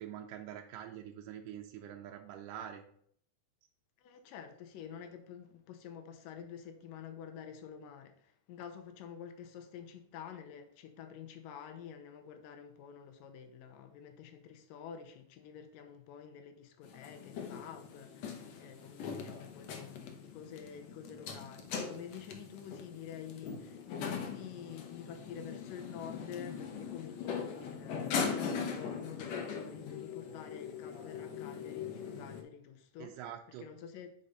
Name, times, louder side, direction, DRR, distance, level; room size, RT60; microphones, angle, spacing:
voice 1, 0.0-2.8 33.0-33.7, right 10 dB, 80° right, 2.2 m, -45 dB
voice 2, 4.0-33.2 33.6-34.1, left 8 dB, 85° left, 2.4 m, -49 dB
sound 1, 16.8-32.4, left 6 dB, 65° left, 1.9 m, -41 dB
5.3 x 4.9 x 5.5 m
omnidirectional pair, 3.7 m